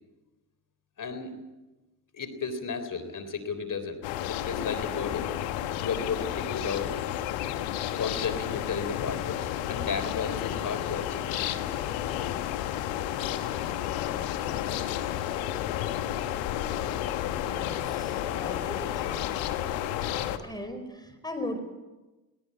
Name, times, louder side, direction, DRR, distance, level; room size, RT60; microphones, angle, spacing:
voice 1, 1.0-1.3 2.1-4.0 4.3-5.3 5.8-7.0 8.0-11.3, left 5 dB, 45° left, 10 dB, 3.8 m, -33 dB
sound 1, 4.0-20.4, left 11 dB, 90° left, 1.4 m, -31 dB
voice 2, 17.3-19.3 20.4-21.6, left 1 dB, 10° left, 7 dB, 4.8 m, -38 dB
20.5 x 18.5 x 8.6 m, 1.1 s
supercardioid pair, 65°, 44 cm